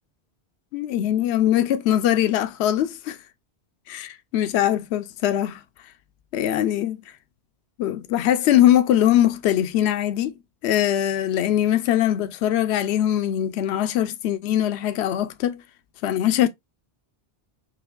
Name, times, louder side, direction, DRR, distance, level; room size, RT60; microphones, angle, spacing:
voice 1, 0.7-3.2 3.9-5.6 6.3-7.0 7.8-10.3 10.6-15.6 16.0-16.5, left 11 dB, 80° left, 0.8 m, -21 dB
5.1 x 2.8 x 2.3 m
omnidirectional pair, 1.1 m